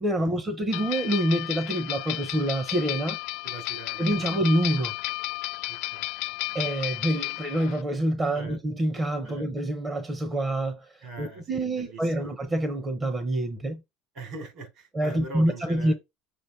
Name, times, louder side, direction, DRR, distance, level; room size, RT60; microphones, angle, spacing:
voice 1, 0.0-3.2 4.0-4.9 6.5-13.8 14.9-15.9, right 1 dB, 20° right, 0.9 m, -27 dB
sound 1, 0.7-7.8, left 22 dB, 70° left, 0.4 m, -33 dB
voice 2, 3.4-4.3 5.7-6.1 6.5-6.6 8.3-8.6 9.2-9.4 11.0-12.3 14.1-15.9, right 2 dB, 55° right, 3.8 m, -42 dB
6.8 x 3.0 x 5.8 m
cardioid pair, 140°, 0 cm